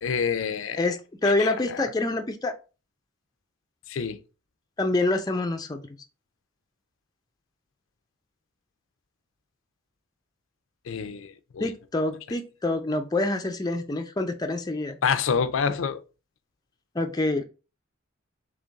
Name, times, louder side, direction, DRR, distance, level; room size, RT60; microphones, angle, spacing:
voice 1, 0.0-0.8 1.2-1.9 3.9-4.2 10.9-11.7 15.0-16.0, left 6 dB, 85° left, 0.5 m, -28 dB
voice 2, 0.8-2.5 4.8-5.8 11.6-15.0 16.9-17.4, left 2 dB, 20° left, 0.5 m, -26 dB
3.6 x 3.4 x 3.9 m
head